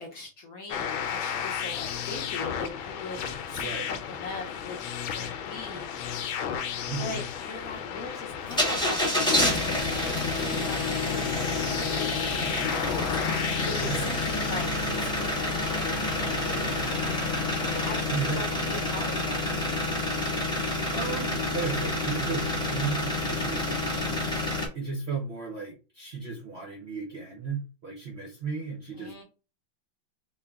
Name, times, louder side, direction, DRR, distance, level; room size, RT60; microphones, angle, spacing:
voice 1, 0.0-4.8 5.1-5.9 7.0-16.1 17.6-19.8 28.9-29.2, left 3 dB, 60° left, 0 dB, 1.0 m, -41 dB
sound 1, 0.7-18.0, left 8 dB, 90° left, 1.4 m, -34 dB
voice 2, 3.6-3.9 6.9-7.2 13.7-14.3 17.1-17.5 18.1-18.7 20.9-24.2 24.7-29.1, right 5 dB, 50° right, -1 dB, 0.8 m, -35 dB
sound 2, 8.5-24.7, left 1 dB, 5° left, 0.7 m, -28 dB
3.8 x 2.2 x 3.5 m, 0.32 s
omnidirectional pair, 2.1 m